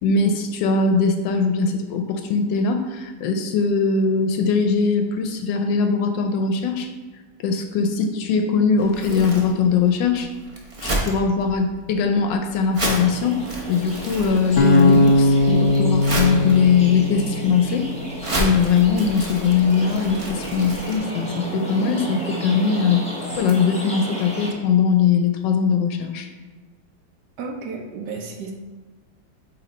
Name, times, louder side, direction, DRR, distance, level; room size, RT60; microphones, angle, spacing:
voice 1, 0.0-6.9 7.4-10.3 10.8-17.9 18.4-23.0 23.4-26.3, left 5 dB, 75° left, 6 dB, 1.2 m, -21 dB
Crumpling crinkling, 8.8-21.0, right 1 dB, 40° right, 0.4 m, -31 dB
sound 1, 13.0-24.5, right 1 dB, 5° left, 1.1 m, -33 dB
sound 2, 14.6-17.7, left 1 dB, 50° left, 1.1 m, -18 dB
voice 2, 27.4-28.5, right 4 dB, 65° right, 2 dB, 1.2 m, -32 dB
8.6 x 3.1 x 4.2 m, 1.3 s
omnidirectional pair, 2.2 m